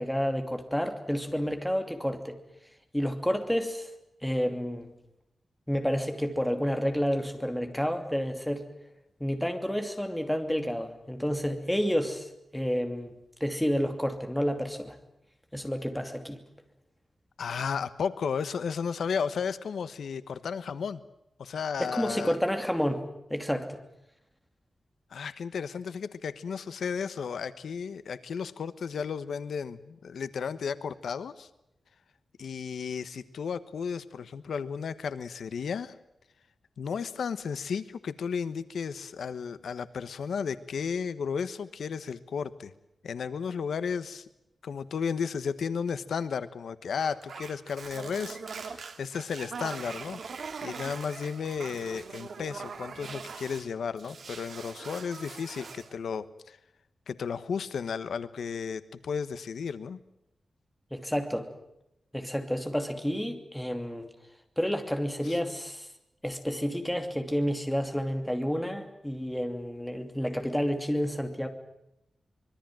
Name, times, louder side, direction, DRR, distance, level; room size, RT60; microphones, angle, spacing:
voice 1, 0.0-2.4 2.9-3.9 4.2-4.9 5.7-8.7 9.2-13.1 13.4-15.0 15.5-16.4 21.8-23.0 23.3-23.8 60.9-61.5 62.1-64.1 64.6-65.9 66.2-71.5, equal, 5° left, 5 dB, 2.7 m, -30 dB
voice 2, 17.4-21.0 21.4-22.3 25.1-31.5 32.4-35.9 36.8-42.7 43.0-44.2 44.6-50.2 50.6-56.6 57.1-60.0 65.2-65.4, left 6 dB, 85° left, 13 dB, 1.2 m, -34 dB
sound 1, 47.0-53.7 54.0-55.9, right 5 dB, 60° right, 2.1 m, -42 dB
25.0 x 22.0 x 7.6 m, 0.83 s
wide cardioid pair, 150°, 0 cm